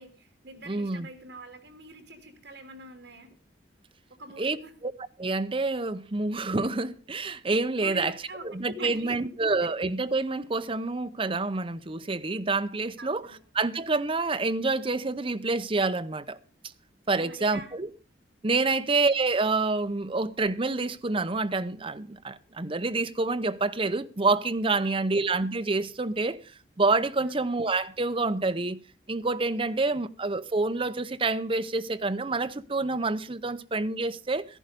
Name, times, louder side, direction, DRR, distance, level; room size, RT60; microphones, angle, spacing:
voice 1, 0.0-3.3 4.2-4.7 7.8-9.1 13.0-13.4 17.2-17.7 18.6-18.9 24.8-24.9 27.2-27.4, right 1 dB, 65° right, 3.0 m, -44 dB
voice 2, 0.7-1.1 4.4-4.6 4.8-4.9 5.2-8.1 8.4-13.2 13.5-16.4 17.1-17.9 18.4-26.4 26.8-28.8 29.1-34.4, right 3 dB, 30° right, 0.7 m, -27 dB
14.0 x 11.0 x 5.2 m
head